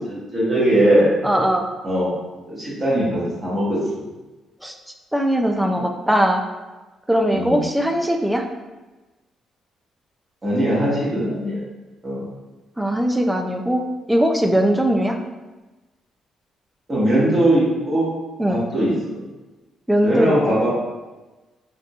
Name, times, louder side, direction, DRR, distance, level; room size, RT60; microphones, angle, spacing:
voice 1, 0.1-1.1 1.8-2.1 2.4-3.8 7.3-7.7 10.4-11.6 12.0-12.2 16.9-18.1 18.5-19.2 20.0-20.7, right 1 dB, 30° right, -8 dB, 1.4 m, -20 dB
voice 2, 1.2-1.7 4.6-4.7 5.1-6.4 7.1-8.4 12.8-15.2 18.4-18.6 19.9-20.6, equal, 5° right, 4 dB, 0.3 m, -20 dB
3.6 x 2.7 x 2.4 m, 1.2 s
cardioid pair, 90°, 0 cm